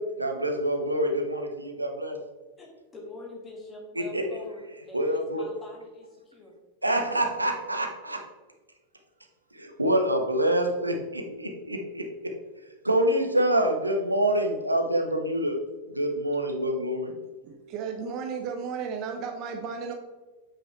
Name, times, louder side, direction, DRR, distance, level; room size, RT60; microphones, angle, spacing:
voice 1, 0.2-2.2 4.0-4.2 4.9-5.5 6.8-8.2 9.6-12.0 12.8-15.6 16.0-17.1, right 1 dB, 85° right, 3 dB, 0.9 m, -26 dB
voice 2, 2.6-6.5, left 2 dB, 15° left, -1 dB, 2.1 m, -44 dB
voice 3, 17.4-19.9, right 6 dB, 40° right, 4 dB, 0.8 m, -34 dB
7.7 x 5.8 x 3.3 m, 1.2 s
figure-of-eight pair, 90°, 0 cm